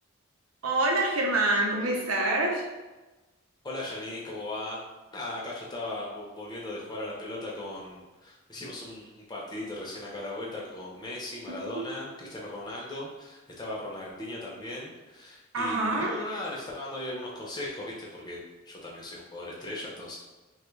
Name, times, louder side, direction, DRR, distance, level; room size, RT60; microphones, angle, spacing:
voice 1, 0.6-2.7 11.7-11.9 15.5-16.1, right 2 dB, 90° right, 0 dB, 0.6 m, -26 dB
voice 2, 3.6-4.8 5.1-18.4 18.6-20.2, left 1 dB, 20° left, -4 dB, 0.6 m, -38 dB
3.1 x 2.3 x 3.1 m, 1.1 s
head